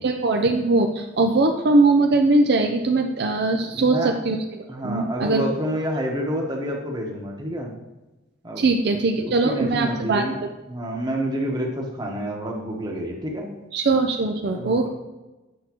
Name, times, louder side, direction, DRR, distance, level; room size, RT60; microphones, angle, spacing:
voice 1, 0.0-5.4 8.6-10.2 13.7-14.9, right 3 dB, 60° right, 4 dB, 0.5 m, -21 dB
voice 2, 3.7-4.1 4.7-7.8 8.4-8.6 9.2-10.4 10.7-13.5 14.5-14.9, equal, 20° right, 0 dB, 1.1 m, -28 dB
8.0 x 6.3 x 3.0 m, 1.1 s
head